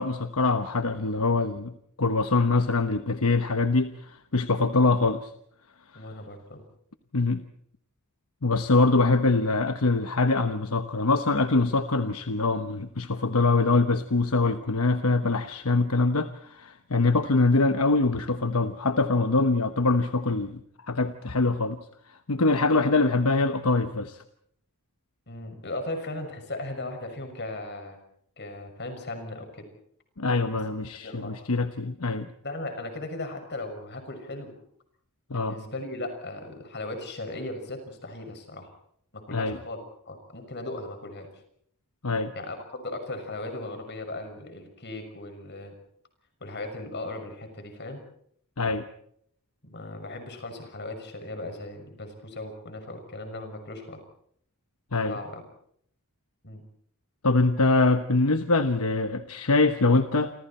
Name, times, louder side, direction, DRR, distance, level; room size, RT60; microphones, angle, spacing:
voice 1, 0.0-1.7 2.0-5.3 7.1-7.4 8.4-20.6 20.9-21.8 22.3-24.2 30.2-32.3 35.3-35.6 39.3-39.6 42.0-42.3 48.6-48.9 54.9-55.2 57.2-60.3, left 3 dB, 75° left, 9 dB, 1.1 m, -24 dB
voice 2, 5.9-6.6 25.3-28.0 28.4-29.6 31.0-31.3 32.4-34.5 35.3-38.7 39.1-39.8 40.0-41.3 42.3-45.7 46.4-48.0 49.7-54.0 55.1-55.4 56.4-56.6, left 2 dB, 50° left, 6 dB, 6.3 m, -37 dB
29.0 x 26.5 x 4.4 m, 0.68 s
head